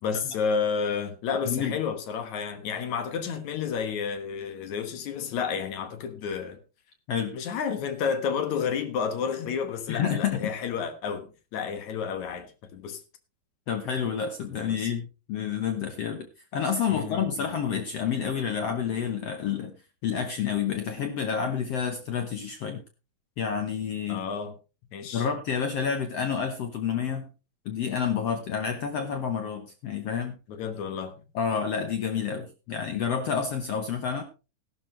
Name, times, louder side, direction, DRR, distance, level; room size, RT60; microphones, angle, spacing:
voice 1, 0.0-6.6 7.3-13.0 14.5-14.9 16.9-17.5 24.1-24.5 24.9-25.3 30.5-31.1, left 6 dB, 60° left, 2.3 m, -31 dB
voice 2, 1.5-1.8 7.1-7.3 9.9-10.5 13.7-16.3 16.5-19.7 20.0-22.8 23.4-24.2 25.1-27.3 27.6-30.4 31.3-34.2, left 7 dB, 80° left, 1.3 m, -29 dB
14.5 x 12.0 x 3.2 m
omnidirectional pair, 4.4 m